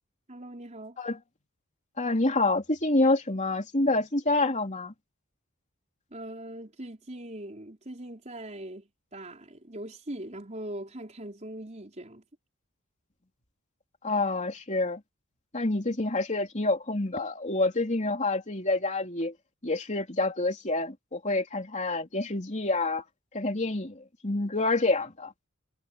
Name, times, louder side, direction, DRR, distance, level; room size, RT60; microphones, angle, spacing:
voice 1, 0.3-1.0 6.1-12.2, right 1 dB, 30° right, 4.7 m, -41 dB
voice 2, 2.0-4.9 14.0-15.0 15.5-19.3 19.6-23.0 23.3-25.3, left 2 dB, 35° left, 3.2 m, -27 dB
head